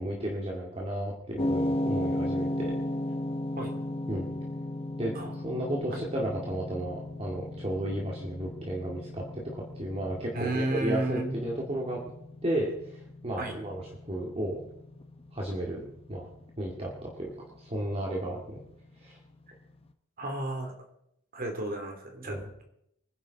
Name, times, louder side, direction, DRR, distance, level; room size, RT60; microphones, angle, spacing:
voice 1, 0.0-2.7 4.1-4.3 5.0-12.0 12.4-14.6 15.3-15.8 16.1-16.3 16.6-18.6 19.0-19.2 22.3-22.4, right 1 dB, 30° right, -2 dB, 2.2 m, -33 dB
sound 1, 1.4-19.6, left 1 dB, 30° left, 0.9 m, -36 dB
voice 2, 10.3-11.4 13.4-13.5 20.2-20.7 21.3-22.6, right 2 dB, 45° right, 4 dB, 3.0 m, -32 dB
24.0 x 10.5 x 4.1 m, 0.75 s
head